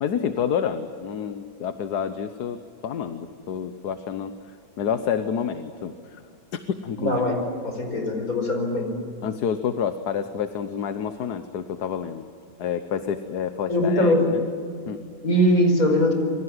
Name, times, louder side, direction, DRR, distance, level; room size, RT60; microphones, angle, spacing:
voice 1, 0.0-6.2 6.5-7.2 9.2-12.3 12.6-14.4 14.9-15.0, left 7 dB, 80° left, 9 dB, 1.6 m, -29 dB
voice 2, 7.0-7.4 7.6-8.9 13.7-14.2 15.2-16.1, equal, 60° left, 4 dB, 5.6 m, -21 dB
27.0 x 23.5 x 8.0 m, 2.3 s
omnidirectional pair, 1.7 m